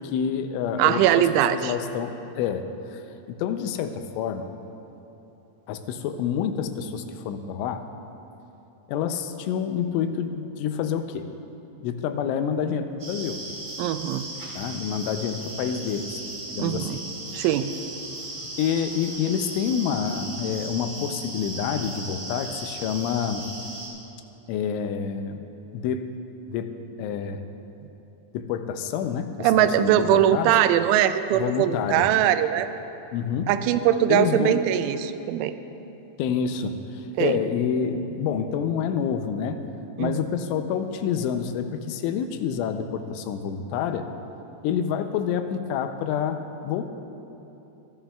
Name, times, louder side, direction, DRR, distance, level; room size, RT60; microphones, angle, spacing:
voice 1, 0.0-3.0 3.3-4.5 5.7-7.9 8.9-11.3 11.8-13.4 14.6-16.2 16.5-17.0 18.6-23.4 24.5-25.5 25.7-26.1 26.5-26.7 27.0-27.4 28.3-30.5 31.3-32.1 33.1-33.5 34.1-34.6 36.2-39.6 40.0-44.1 44.6-46.9, left 7 dB, 85° left, 8 dB, 3.1 m, -28 dB
voice 2, 0.8-1.7 13.8-14.3 16.6-17.0 17.3-17.7 29.4-32.7 33.5-35.5 37.2-37.4 40.0-40.3, right 11 dB, 90° right, 11 dB, 3.0 m, -21 dB
sound 1, 13.0-23.9, right 2 dB, 35° right, 1.6 m, -37 dB
26.0 x 11.0 x 2.3 m, 2.9 s
omnidirectional pair, 5.4 m